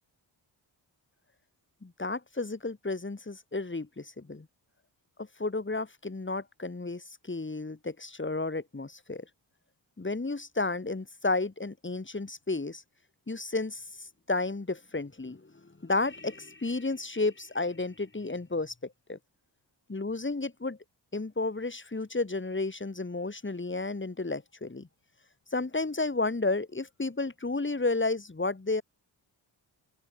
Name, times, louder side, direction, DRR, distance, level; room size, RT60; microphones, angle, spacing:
voice 1, 1.8-4.5 5.2-9.2 10.0-12.8 13.3-19.2 19.9-20.8 21.1-24.9 25.5-28.8, left 3 dB, 25° left, 5.1 m, -32 dB
open air
cardioid pair, 65°, 46 cm